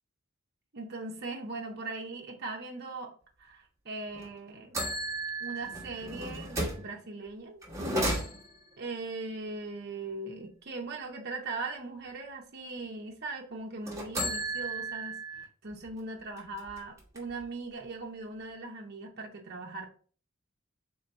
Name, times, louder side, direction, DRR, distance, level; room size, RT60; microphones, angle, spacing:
voice 1, 0.7-3.1 3.4-4.8 5.4-7.6 8.8-15.2 15.6-19.9, right 3 dB, 50° right, 1 dB, 0.7 m, -39 dB
sound 1, 4.1-4.3 4.7-6.9 7.6-8.7 13.8-15.4 15.9-16.0 16.4-17.4, right 1 dB, 15° right, 1.1 m, -34 dB
3.7 x 2.7 x 4.5 m, 0.42 s
head